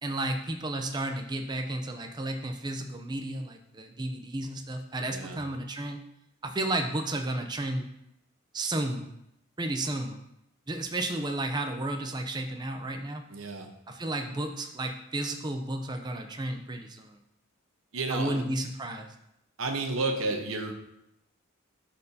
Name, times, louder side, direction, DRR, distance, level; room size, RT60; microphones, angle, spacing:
voice 1, 0.0-6.0 6.4-7.9 8.5-9.1 9.6-10.2 10.7-13.3 13.9-17.2 18.1-19.1, right 1 dB, 20° right, 5 dB, 0.5 m, -32 dB
voice 2, 5.1-5.4 13.3-13.7 17.9-18.4 19.6-20.7, right 3 dB, 65° right, 4 dB, 1.0 m, -31 dB
11.5 x 4.3 x 2.8 m, 0.80 s
head